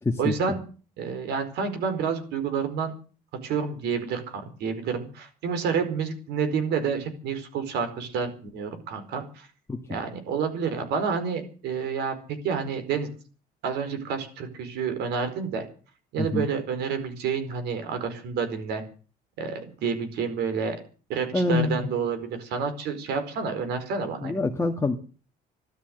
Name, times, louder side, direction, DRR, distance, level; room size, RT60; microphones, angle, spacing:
voice 1, 0.2-0.6 1.0-2.9 3.4-9.5 9.9-12.1 12.4-13.1 13.6-15.6 16.1-18.8 19.4-20.8 21.1-24.3, right 6 dB, 80° right, 8 dB, 4.6 m, -29 dB
voice 2, 16.2-16.5 21.3-21.9 24.2-25.0, left 3 dB, 15° left, 3 dB, 1.6 m, -25 dB
14.0 x 12.5 x 7.8 m, 0.39 s
cardioid pair, 110°, 17 cm